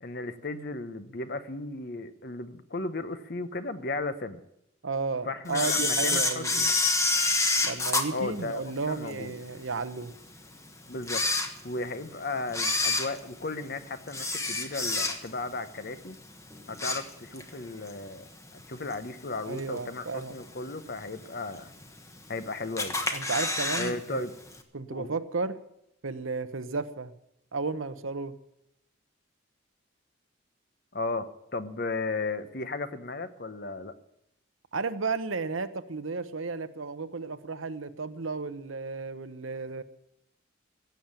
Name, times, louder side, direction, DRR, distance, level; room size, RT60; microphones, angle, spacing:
voice 1, 0.0-4.4 5.3-6.7 8.1-9.3 10.9-11.2 11.6-16.2 16.7-21.7 22.3-23.0 23.8-24.3 24.9-25.1 30.9-31.3 31.5-33.9, left 3 dB, 50° left, 11 dB, 0.9 m, -35 dB
voice 2, 4.8-6.7 7.6-10.1 19.5-20.3 23.1-24.2 24.7-25.6 26.0-27.1 27.5-28.4 34.7-39.8, right 4 dB, 75° right, 11 dB, 0.9 m, -33 dB
Camera, 5.5-9.1 9.6-9.7 10.4-10.5 11.0-12.0 12.5-15.5 15.8-16.1 16.5-17.5 17.9-18.0 18.9-19.0 19.6-20.0 20.4-20.5 20.7-20.8 21.0-21.1 21.8-22.3 22.8-23.9 24.2-24.3 24.5-24.6, left 3 dB, 15° left, 1.1 m, -27 dB
16.0 x 7.4 x 8.9 m, 0.82 s
head